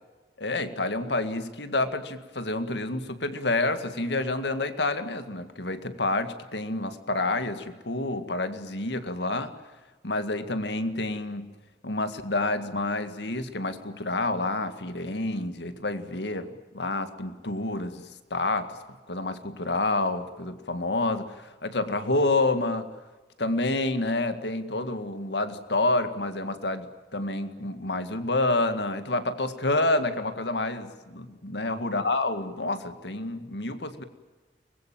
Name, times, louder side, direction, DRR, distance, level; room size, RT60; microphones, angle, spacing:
voice 1, 0.4-9.5 10.0-11.5 11.8-18.8 19.1-22.9 23.4-34.0, left 2 dB, 75° left, 10 dB, 1.9 m, -28 dB
24.0 x 21.0 x 9.0 m, 1.3 s
head